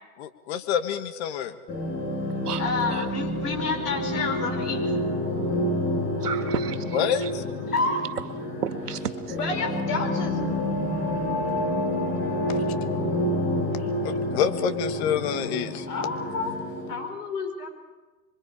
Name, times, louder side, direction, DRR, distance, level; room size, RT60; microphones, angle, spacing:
voice 1, 0.2-1.5 6.9-7.4 12.5-12.6 14.0-15.9, left 8 dB, 45° left, 1.8 m, -27 dB
sound 1, 1.7-16.9, left 1 dB, 30° left, 7.2 m, -28 dB
voice 2, 2.6-4.8 7.7-8.0 9.4-10.4 15.9-16.5 16.9-17.7, left 4 dB, 80° left, 5.1 m, -29 dB
voice 3, 6.2-7.3 8.6-9.4, right 8 dB, 80° right, 2.3 m, -32 dB
27.0 x 24.0 x 4.9 m
hypercardioid pair, 135°, 45 cm